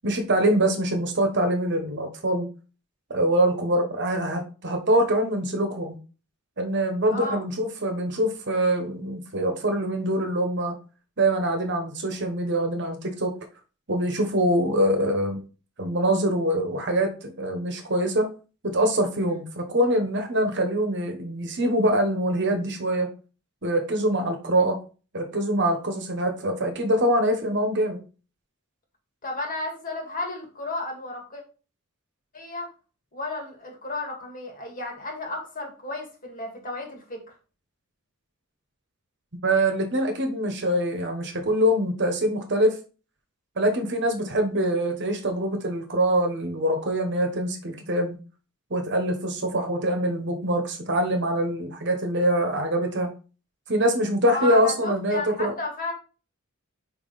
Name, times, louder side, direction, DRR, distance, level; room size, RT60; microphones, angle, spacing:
voice 1, 0.0-2.5 3.1-6.0 6.6-10.7 11.2-13.3 13.9-15.4 15.8-18.3 18.6-23.1 23.6-24.8 25.1-28.0 39.4-42.8 43.6-48.2 48.7-53.1 53.7-55.5, right 1 dB, 55° right, 5 dB, 1.2 m, -24 dB
voice 2, 7.1-7.4 29.2-31.4 32.3-32.7 33.1-37.2 54.3-55.9, left 2 dB, 40° left, 1 dB, 1.9 m, -33 dB
5.2 x 4.8 x 4.0 m, 0.36 s
head